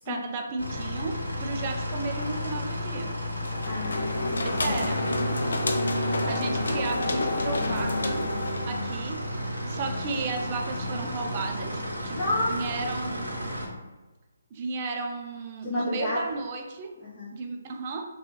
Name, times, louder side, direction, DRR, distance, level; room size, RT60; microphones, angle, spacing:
voice 1, 0.1-3.1 4.4-5.0 6.2-8.3 8.7-9.2 9.7-13.5 14.5-16.9 17.3-18.1, right 4 dB, 35° right, 3 dB, 0.3 m, -34 dB
sound 1, 0.6-13.7, equal, 80° right, 0.8 m, -32 dB
sound 2, 3.4-8.9, left 2 dB, 65° left, 0.3 m, -30 dB
voice 2, 3.6-4.9 12.1-12.6 15.6-16.3 17.0-17.3, left 2 dB, 25° left, -10 dB, 0.6 m, -31 dB
2.4 x 2.3 x 2.9 m, 1.2 s
figure-of-eight pair, 140°, 0 cm